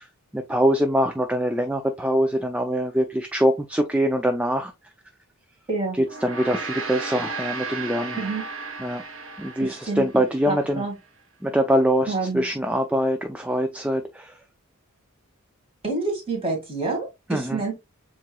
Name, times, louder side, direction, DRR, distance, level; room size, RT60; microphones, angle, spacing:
voice 1, 0.3-4.7 6.0-8.2 8.8-9.0 9.4-10.8 11.4-14.4 17.3-17.6, equal, 5° right, 0.3 m, -23 dB
Gong, 6.0-10.6, right 3 dB, 65° right, 1.1 m, -34 dB
voice 2, 9.6-10.1 10.5-10.9 12.1-12.5 15.8-17.7, right 3 dB, 25° right, 1.9 m, -28 dB
7.2 x 3.0 x 2.2 m
head